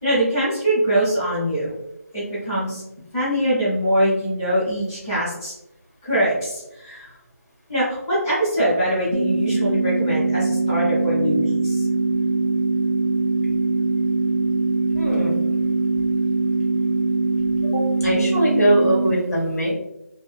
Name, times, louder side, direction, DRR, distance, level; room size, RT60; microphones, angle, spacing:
voice 1, 0.0-1.7 2.1-2.8 3.1-5.5 6.0-7.1 7.7-11.8, right 1 dB, 10° left, -11 dB, 0.6 m, -23 dB
sound 1, 9.1-19.1, right 3 dB, 60° right, 0.4 m, -22 dB
voice 2, 14.9-15.4 17.6-19.7, right 1 dB, 75° left, -4 dB, 1.4 m, -21 dB
2.7 x 2.6 x 2.4 m, 0.87 s
figure-of-eight pair, 175°, 9 cm